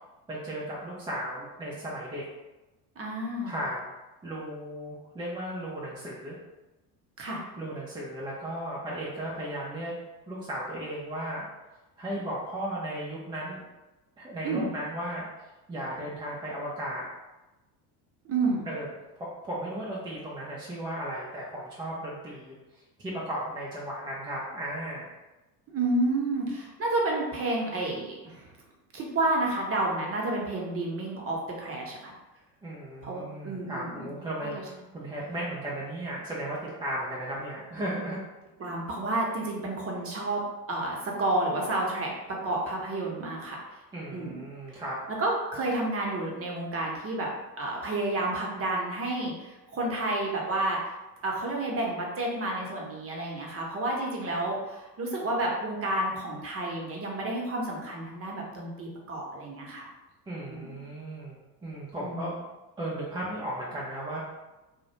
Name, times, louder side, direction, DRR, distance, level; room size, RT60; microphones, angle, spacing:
voice 1, 0.3-2.2 3.4-3.9 4.2-6.4 7.6-9.9 10.3-11.5 12.0-13.6 14.2-15.3 15.7-17.0 18.7-18.9 19.2-25.1 32.6-38.2 43.9-45.0 60.3-62.3 62.8-64.2, right 1 dB, 10° right, -6 dB, 0.3 m, -35 dB
voice 2, 3.0-3.5 7.2-7.4 14.4-14.7 18.2-18.7 25.7-28.5 28.9-32.1 33.0-34.1 34.4-34.6 38.6-40.4 40.7-43.6 44.1-44.3 45.2-47.3 47.6-50.8 51.2-59.9 60.5-60.7 62.0-62.4, right 2 dB, 30° right, -2 dB, 0.7 m, -30 dB
2.3 x 2.1 x 2.9 m, 1.1 s
hypercardioid pair, 75°, 48 cm